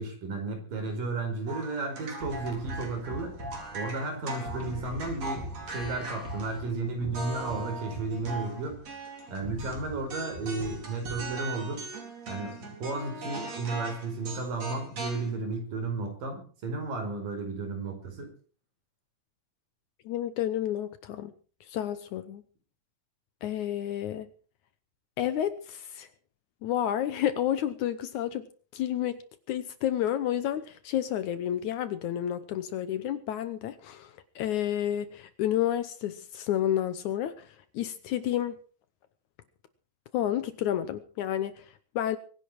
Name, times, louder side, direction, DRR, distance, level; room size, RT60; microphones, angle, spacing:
voice 1, 0.0-3.4 3.7-8.8 9.3-11.8 12.3-18.3, right 3 dB, 70° right, 4 dB, 6.6 m, -33 dB
sound 1, 1.5-6.8 7.1-9.8 10.1-15.3, right 2 dB, 45° right, 5.2 m, -40 dB
sound 2, 2.2-4.1 4.5-8.9 9.4-11.3, right 1 dB, 25° right, 5.6 m, -42 dB
voice 2, 20.1-21.3 21.6-22.4 23.4-24.3 25.2-26.1 26.6-28.5 28.7-29.2 29.5-38.6 40.1-41.7 42.0-42.2, left 11 dB, 70° left, 13 dB, 2.0 m, -30 dB
23.5 x 10.5 x 4.6 m, 0.40 s
omnidirectional pair, 4.0 m